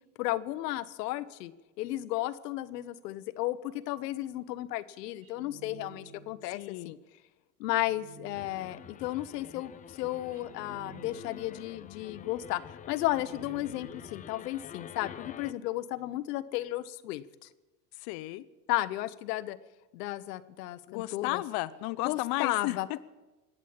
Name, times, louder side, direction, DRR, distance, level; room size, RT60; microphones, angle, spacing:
voice 1, 0.2-1.5 1.8-7.0 7.6-17.5 18.7-19.6 19.9-21.4 22.0-23.0, left 16 dB, 85° left, 15 dB, 0.9 m, -34 dB
sound 1, 5.2-6.6 7.7-9.0 10.3-11.7 13.0-14.4, right 5 dB, 45° right, 2.5 m, -52 dB
voice 2, 6.5-6.9 17.9-18.4 20.9-22.8, left 19 dB, 55° left, 12 dB, 0.7 m, -34 dB
sound 2, 8.3-15.5, left 8 dB, 20° left, 0.4 m, -47 dB
20.5 x 8.3 x 8.7 m, 1.1 s
supercardioid pair, 120°, 47 cm